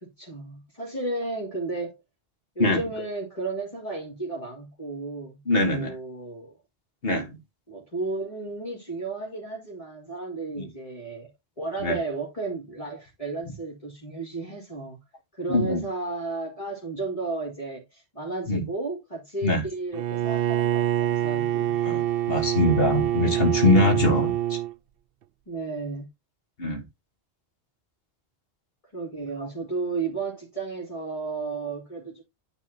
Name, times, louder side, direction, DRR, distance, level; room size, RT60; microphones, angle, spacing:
voice 1, 0.0-2.0 2.6-6.6 7.7-11.3 11.6-15.0 15.3-21.7 25.5-26.1 28.9-32.2, right 3 dB, 30° left, 2.4 m, -33 dB
voice 2, 5.5-5.9 7.0-7.4 10.6-10.7 11.8-12.0 15.5-15.9 18.5-18.7 19.4-19.6 21.8-24.6 26.6-26.8 29.4-29.5, left 2 dB, 60° left, 2.0 m, -23 dB
Bowed string instrument, 19.9-24.7, right 12 dB, 65° right, 0.7 m, -25 dB
9.7 x 3.6 x 4.1 m
omnidirectional pair, 1.1 m